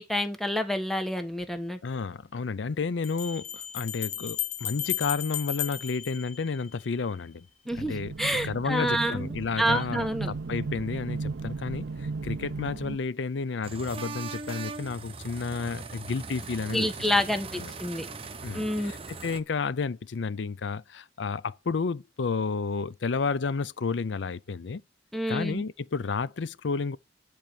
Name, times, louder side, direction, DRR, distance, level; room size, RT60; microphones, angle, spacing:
voice 1, 0.0-1.8 7.7-10.3 16.7-18.1 18.5-18.9 25.1-25.6, equal, ahead, 1.3 m, -28 dB
sound 1, 1.4-1.5 3.0-7.0, left 11 dB, 40° left, 1.0 m, -34 dB
voice 2, 1.8-7.5 7.7-8.1 8.4-16.9 17.6-17.7 18.4-24.8 25.3-27.0, left 4 dB, 80° left, 0.5 m, -31 dB
sound 2, 7.7-13.0, right 4 dB, 80° right, 0.6 m, -35 dB
sound 3, 13.6-19.4, right 4 dB, 30° right, 0.9 m, -40 dB
10.5 x 4.5 x 6.9 m
head